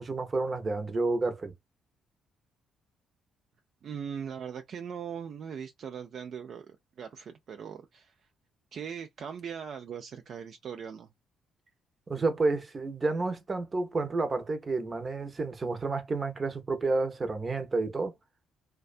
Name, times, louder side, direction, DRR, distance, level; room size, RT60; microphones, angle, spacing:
voice 1, 0.0-1.5 12.1-18.1, right 3 dB, 35° right, 0.7 m, -30 dB
voice 2, 3.8-8.2 8.7-11.1, right 7 dB, 60° right, 0.3 m, -40 dB
2.4 x 2.2 x 2.4 m
hypercardioid pair, 55°, 0 cm